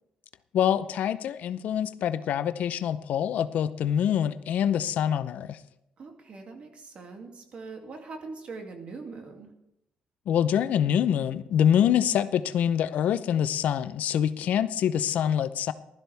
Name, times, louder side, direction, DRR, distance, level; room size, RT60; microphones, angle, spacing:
voice 1, 0.5-5.6 10.3-15.7, left 9 dB, 75° left, 13 dB, 0.6 m, -25 dB
voice 2, 6.0-9.5, right 4 dB, 50° right, 3 dB, 2.5 m, -42 dB
15.5 x 12.5 x 3.4 m, 0.83 s
cardioid pair, 105°, 3 cm